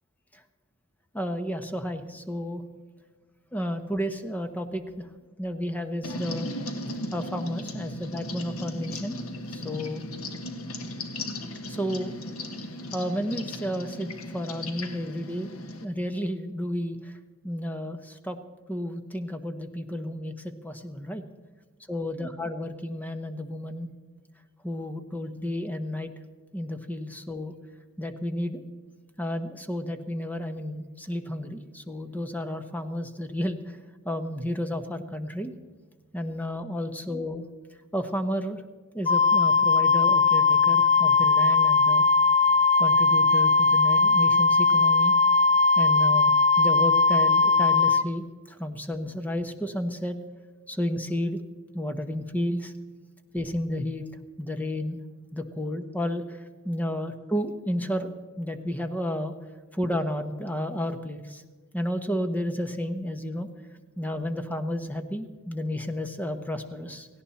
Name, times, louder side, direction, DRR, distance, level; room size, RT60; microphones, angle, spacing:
voice 1, 1.1-2.6 3.5-5.1 5.4-6.5 7.1-9.2 9.5-10.0 11.7-12.2 12.9-15.5 15.8-17.1 17.4-18.4 18.7-21.2 21.9-23.9 24.6-26.1 26.5-27.5 28.0-28.6 29.2-33.8 34.0-35.5 36.1-37.5 37.9-38.6 38.9-42.1 42.8-45.1 45.8-50.2 50.7-51.4 51.7-52.7 53.3-54.0 54.4-55.0 55.3-56.2 56.6-58.1 58.4-59.4 59.7-61.4 61.7-63.5 64.0-67.1, equal, 10° left, 8 dB, 1.0 m, -32 dB
sound 1, 6.0-15.9, left 1 dB, 90° left, 1.4 m, -36 dB
Wind instrument woodwind instrument, 39.1-48.0, left 4 dB, 30° left, 0.4 m, -20 dB
17.5 x 17.0 x 4.2 m, 1.4 s
head